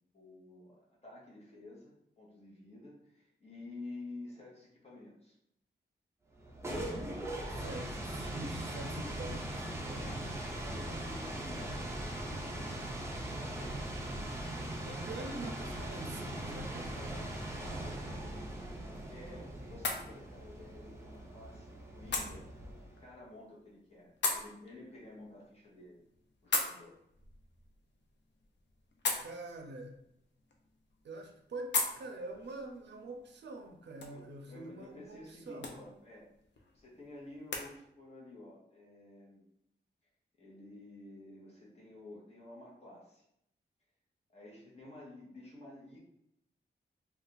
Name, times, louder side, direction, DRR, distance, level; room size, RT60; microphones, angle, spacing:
voice 1, 0.1-5.3 10.0-10.2 10.5-13.9 16.9-22.4 23.0-26.0 26.4-27.0 34.1-36.3 36.7-39.5 40.4-43.2 44.3-46.0, left 2 dB, 35° left, -4 dB, 0.9 m, -51 dB
sound 1, 6.3-23.1, right 1 dB, 15° right, 0.5 m, -40 dB
voice 2, 7.5-10.1 14.8-17.0 29.2-29.9 31.0-35.7, right 2 dB, 70° right, 3 dB, 0.5 m, -45 dB
sound 2, 18.2-37.7, left 3 dB, 75° left, 0.5 m, -42 dB
2.4 x 2.3 x 3.8 m, 0.77 s
wide cardioid pair, 165°, 18 cm